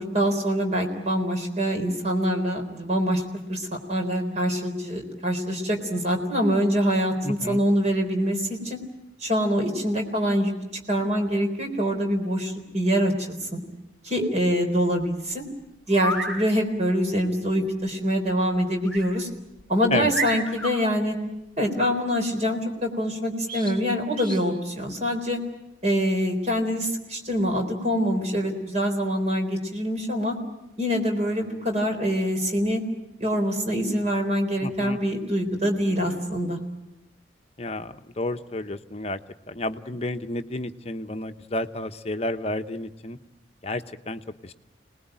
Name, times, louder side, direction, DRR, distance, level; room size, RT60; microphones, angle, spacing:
voice 1, 0.0-3.2 3.5-8.8 9.2-10.5 10.9-13.1 13.5-13.6 14.0-15.4 15.9-19.3 19.7-21.2 21.6-25.4 25.8-30.4 30.8-32.8 33.2-36.6, equal, 35° right, 4 dB, 4.0 m, -25 dB
voice 2, 7.2-7.6 19.9-20.1 34.6-35.0 37.6-39.2 39.5-43.2 43.6-44.5, left 2 dB, 35° left, 8 dB, 0.9 m, -31 dB
sound 1, 15.9-16.3 18.9-19.1 19.6-19.7 20.1-20.7 23.5-23.8 24.2-24.4, right 1 dB, 5° left, 5.9 m, -30 dB
27.0 x 20.0 x 9.0 m, 0.95 s
head